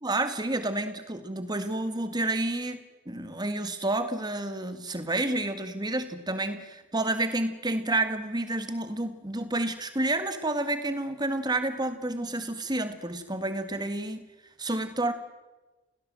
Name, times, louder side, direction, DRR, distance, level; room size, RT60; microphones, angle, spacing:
voice 1, 0.0-14.3 14.6-15.1, right 2 dB, 20° right, 9 dB, 1.8 m, -30 dB
28.5 x 17.5 x 7.7 m, 1.1 s
head